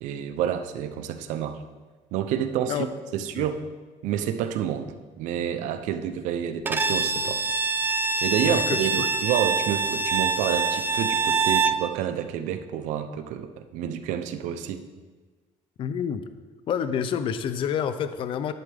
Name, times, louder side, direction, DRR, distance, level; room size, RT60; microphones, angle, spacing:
voice 1, 0.0-1.6 2.1-3.6 4.0-7.4 8.2-14.8, right 9 dB, 85° right, 9 dB, 0.8 m, -29 dB
Bowed string instrument, 6.7-11.9, right 4 dB, 15° right, 0.5 m, -25 dB
voice 2, 8.4-9.1 15.8-16.2 16.7-18.5, left 8 dB, 45° left, 11 dB, 0.6 m, -28 dB
11.5 x 11.0 x 3.6 m, 1.3 s
cardioid pair, 150°, 12 cm